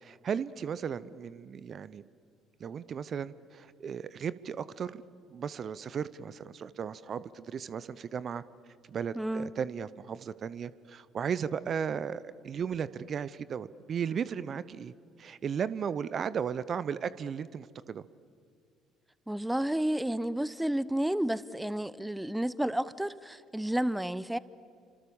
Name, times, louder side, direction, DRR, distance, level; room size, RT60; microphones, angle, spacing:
voice 1, 0.0-2.0 2.6-5.0 5.3-8.4 8.9-14.9 15.2-18.0, right 7 dB, 45° right, 0.8 m, -35 dB
voice 2, 9.1-9.5 19.3-24.4, right 1 dB, 5° right, 0.9 m, -31 dB
30.0 x 26.0 x 7.2 m
figure-of-eight pair, 50°, 0 cm